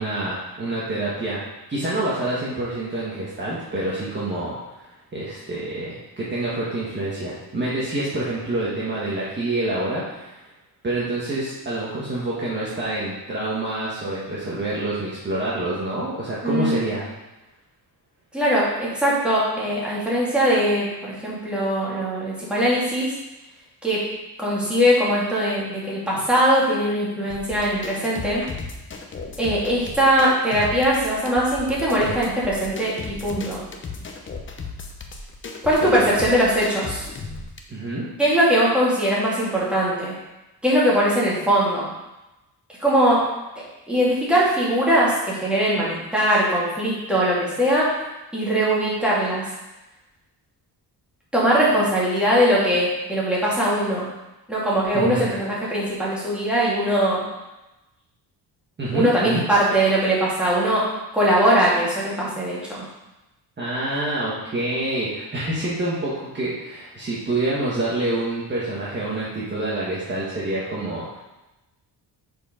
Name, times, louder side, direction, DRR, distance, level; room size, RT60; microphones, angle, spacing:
voice 1, 0.0-1.4 1.7-10.4 10.8-17.1 35.8-36.1 37.7-38.1 54.9-55.2 58.8-59.4 63.6-71.2, right 2 dB, 25° right, -8 dB, 1.4 m, -27 dB
voice 2, 16.4-16.9 18.3-23.1 23.8-24.0 24.4-28.4 29.4-33.6 35.6-37.0 38.2-40.1 40.6-41.9 42.8-43.2 43.9-47.9 48.3-49.4 51.3-54.1 54.5-57.2 58.9-60.8 61.1-62.8, right 1 dB, 5° right, -7 dB, 2.3 m, -21 dB
sound 1, 27.3-37.6, left 4 dB, 30° left, 0.7 m, -36 dB
6.7 x 4.6 x 5.0 m, 1.0 s
cardioid pair, 155°, 41 cm